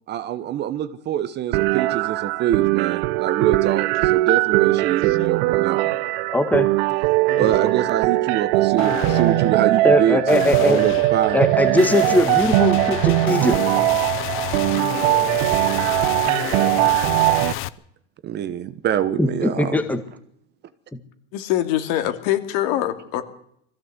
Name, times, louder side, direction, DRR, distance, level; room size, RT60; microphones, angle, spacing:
voice 1, 0.1-5.9 7.4-11.4 14.7-14.8 18.2-19.8, right 10 dB, 30° right, 1.1 m, -25 dB
sound 1, 1.5-17.5, right 19 dB, 55° right, 0.8 m, -20 dB
sound 2, 3.9-4.1 4.5-5.3 5.8-6.2 7.3-7.9 8.8-17.7, left 14 dB, 35° left, 0.9 m, -30 dB
voice 2, 6.3-6.7 9.8-10.8 11.3-13.6 19.2-20.0, left 1 dB, 5° left, 1.7 m, -20 dB
voice 3, 21.3-23.2, left 13 dB, 55° left, 2.7 m, -23 dB
21.5 x 15.5 x 8.1 m
supercardioid pair, 135°, 35 cm